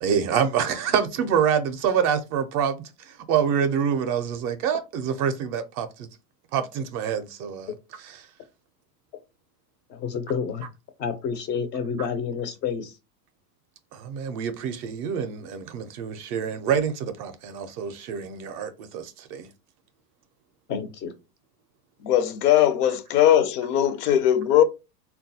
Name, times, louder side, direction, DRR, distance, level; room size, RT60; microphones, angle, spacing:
voice 1, 0.0-6.1 6.5-8.3 13.9-19.5, right 7 dB, 40° right, 0.5 m, -26 dB
voice 2, 9.9-10.6 11.0-12.9 20.7-21.1, left 6 dB, 25° left, 0.4 m, -29 dB
voice 3, 22.0-24.6, left 11 dB, 70° left, 0.6 m, -19 dB
3.7 x 2.3 x 2.7 m
supercardioid pair, 120°, 48 cm